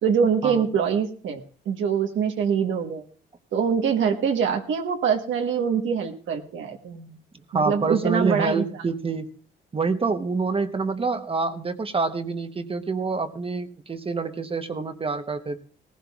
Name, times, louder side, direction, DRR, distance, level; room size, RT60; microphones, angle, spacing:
voice 1, 0.0-3.0 3.5-7.2 7.5-8.6, right 7 dB, 75° right, 3 dB, 1.2 m, -24 dB
voice 2, 7.5-9.3 9.7-15.6, right 4 dB, 30° right, 8 dB, 0.9 m, -26 dB
18.5 x 15.5 x 2.4 m, 0.43 s
cardioid pair, 90°, 20 cm